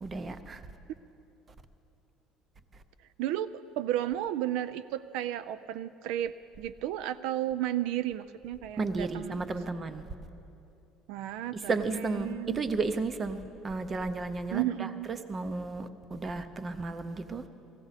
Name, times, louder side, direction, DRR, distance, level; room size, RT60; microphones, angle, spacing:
voice 1, 0.0-0.6 8.8-10.1 11.7-17.4, right 3 dB, 20° right, 11 dB, 0.5 m, -33 dB
voice 2, 3.2-9.4 11.1-12.6 14.5-15.1, right 12 dB, 70° right, 13 dB, 0.3 m, -33 dB
18.5 x 16.0 x 4.1 m, 2.7 s
cardioid pair, 170°, 0 cm